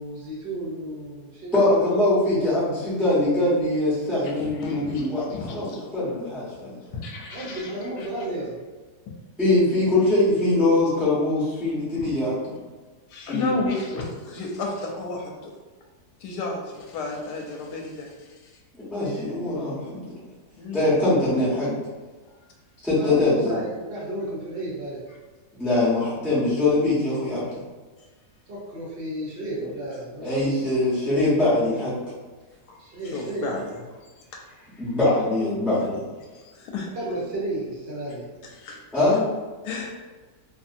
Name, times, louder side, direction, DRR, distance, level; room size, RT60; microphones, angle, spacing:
voice 1, 0.0-1.6 7.3-8.6 19.0-19.3 23.0-25.0 28.5-30.6 32.8-33.5 36.9-38.3, right 1 dB, 55° right, -7 dB, 0.7 m, -33 dB
voice 2, 1.5-5.7 5.9-6.8 9.4-12.5 13.3-13.6 18.9-20.0 20.7-21.7 22.8-23.5 25.6-27.6 30.2-32.0 34.8-35.9 38.9-39.3, left 2 dB, ahead, -10 dB, 0.6 m, -22 dB
voice 3, 4.2-5.8 6.9-8.1 12.0-12.2 13.1-15.5 16.2-18.5 20.6-20.9 30.3-30.5 32.7-32.8 33.0-33.6 34.3-34.9 36.4-36.9 38.6-38.8 39.6-39.9, left 3 dB, 85° left, 0 dB, 1.2 m, -33 dB
2.7 x 2.6 x 2.5 m, 1.3 s
omnidirectional pair, 1.7 m